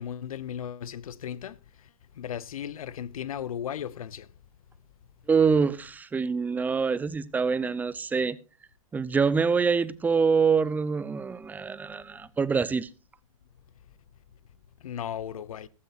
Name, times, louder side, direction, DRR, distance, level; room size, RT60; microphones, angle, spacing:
voice 1, 0.0-1.6 2.2-4.3 14.8-15.7, left 9 dB, 80° left, 0.7 m, -36 dB
voice 2, 5.3-8.4 8.9-12.9, right 5 dB, 10° right, 0.5 m, -25 dB
15.0 x 13.5 x 2.5 m
hypercardioid pair, 130°, 18 cm